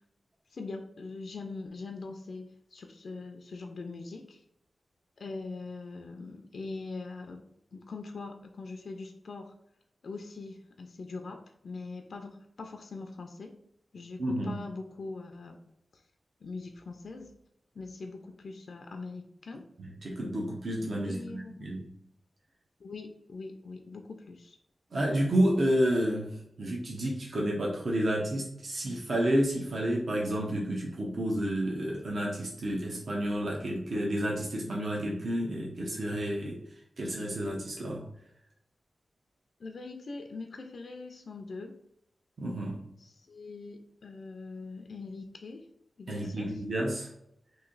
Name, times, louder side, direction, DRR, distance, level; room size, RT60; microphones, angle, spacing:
voice 1, 0.5-4.4 5.2-7.4 7.7-9.5 10.0-13.5 13.9-15.6 15.9-16.0 16.4-17.3 17.8-19.6 21.0-21.8 22.8-24.6 39.6-41.8 43.0-45.7 46.0-46.5, left 3 dB, 65° left, 4 dB, 0.3 m, -42 dB
voice 2, 14.2-14.6 19.8-21.9 24.9-36.6 37.0-38.1 42.4-42.8 46.1-47.1, right 1 dB, 60° right, -3 dB, 0.7 m, -30 dB
3.0 x 2.6 x 3.8 m, 0.77 s
wide cardioid pair, 135°, 0 cm